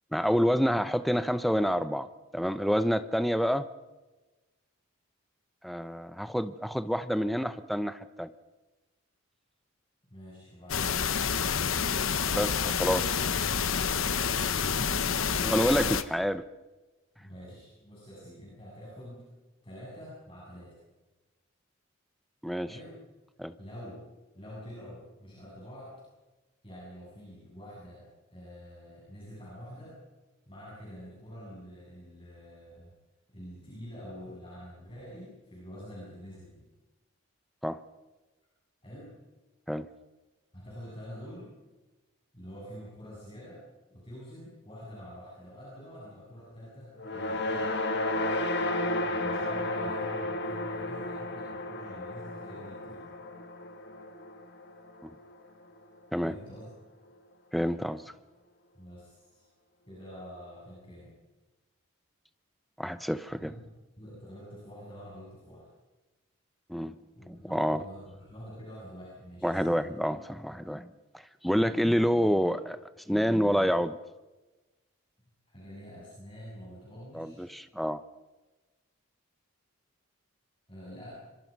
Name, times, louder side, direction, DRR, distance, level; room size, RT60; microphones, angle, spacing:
voice 1, 0.1-3.7 5.6-8.3 12.3-13.1 15.4-16.4 22.4-22.7 23.4-23.5 37.6-37.8 39.7-39.9 55.0-55.1 56.1-56.4 57.5-58.0 62.8-63.5 66.7-67.0 67.3-67.8 69.4-70.9 71.4-72.8 73.1-74.0 77.1-78.0, equal, ahead, 11 dB, 0.7 m, -28 dB
voice 2, 10.1-11.1 14.1-15.5 17.2-19.2 19.6-20.8 22.6-23.0 23.6-24.0 24.3-26.0 26.6-30.0 30.5-32.9 33.3-36.7 38.8-39.1 40.5-41.5 42.3-43.6 43.9-47.8 49.0-53.1 56.2-56.7 58.7-59.5 59.9-61.1 63.4-65.7 67.1-69.9 75.5-77.6 80.7-81.1, equal, 25° left, -6 dB, 7.8 m, -46 dB
sound 1, 10.7-16.0, left 6 dB, 70° left, 1.0 m, -28 dB
sound 2, 47.0-55.3, left 2 dB, 50° left, 1.9 m, -33 dB
25.5 x 24.5 x 5.4 m, 1.1 s
head